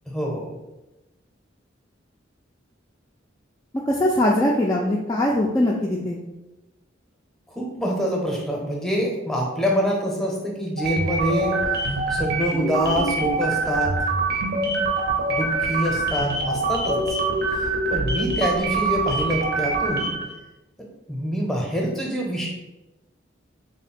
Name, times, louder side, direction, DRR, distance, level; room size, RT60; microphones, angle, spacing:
voice 1, 0.1-0.5 7.5-11.6 12.1-14.0 15.3-17.2 17.9-20.1 20.8-22.5, equal, ahead, -2 dB, 0.7 m, -25 dB
voice 2, 3.9-6.2, left 1 dB, 20° left, -3 dB, 0.3 m, -21 dB
sound 1, 10.8-20.3, right 3 dB, 55° right, 0.6 m, -24 dB
3.6 x 2.1 x 4.1 m, 0.99 s
head